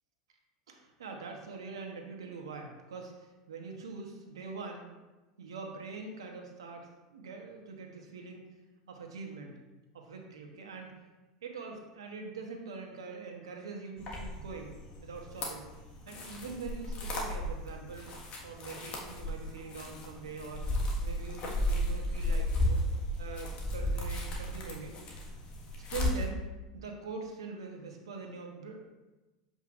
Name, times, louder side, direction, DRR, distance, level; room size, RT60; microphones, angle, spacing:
voice 1, 0.7-4.9 5.4-8.4 8.9-9.6 9.9-10.9 11.4-15.7 16.1-22.8 23.2-25.3 25.8-26.4 26.7-28.8, right 4 dB, 85° right, 2 dB, 1.1 m, -43 dB
sound 1, 14.0-26.2, left 1 dB, 45° left, 1.6 m, -34 dB
7.4 x 5.3 x 2.5 m, 1.1 s
hypercardioid pair, 90°, 3 cm